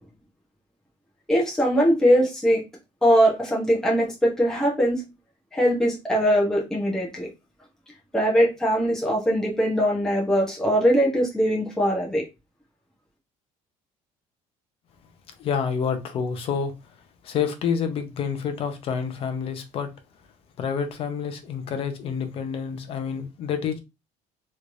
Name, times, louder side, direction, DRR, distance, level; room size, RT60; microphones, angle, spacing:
voice 1, 1.3-2.6 3.0-5.0 5.5-7.3 8.1-12.2, equal, 5° left, 0.9 m, -21 dB
voice 2, 15.4-16.7 17.2-19.9 20.6-23.8, left 7 dB, 45° left, 0.7 m, -28 dB
3.2 x 3.1 x 2.6 m
cardioid pair, 170°, 14 cm